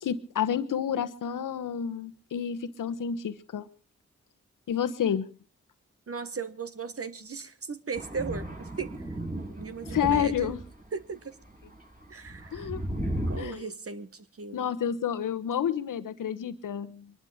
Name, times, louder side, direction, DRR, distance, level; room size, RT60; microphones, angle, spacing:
voice 1, 0.0-3.7 4.7-5.3 9.9-10.6 12.5-12.8 13.4-13.7 14.5-17.1, left 8 dB, 75° left, 13 dB, 1.1 m, -29 dB
voice 2, 6.1-8.9 9.6-10.6 10.9-11.3 12.1-12.7 13.3-14.7, right 5 dB, 45° right, 12 dB, 1.4 m, -37 dB
Thunder, 7.9-10.9 11.4-13.4, right 1 dB, 25° right, 6.8 m, -35 dB
22.5 x 11.5 x 4.9 m, 0.38 s
supercardioid pair, 40°, 32 cm